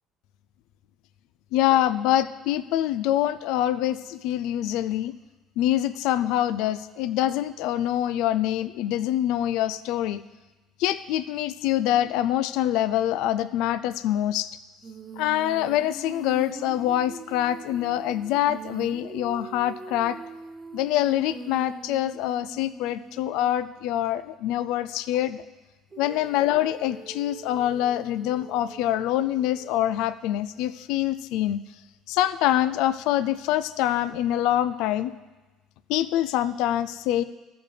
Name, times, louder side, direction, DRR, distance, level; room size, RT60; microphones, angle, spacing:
voice 1, 1.5-5.1 5.6-10.2 10.8-14.5 15.2-20.2 20.7-25.4 26.0-31.6 32.1-35.1 35.9-37.2, left 12 dB, 80° left, 13 dB, 0.3 m, -25 dB
Female singing, 14.8-23.7 25.9-30.1, right 4 dB, 20° right, 0.6 m, -42 dB
14.0 x 7.0 x 3.3 m, 1.2 s
cardioid pair, 150°, 0 cm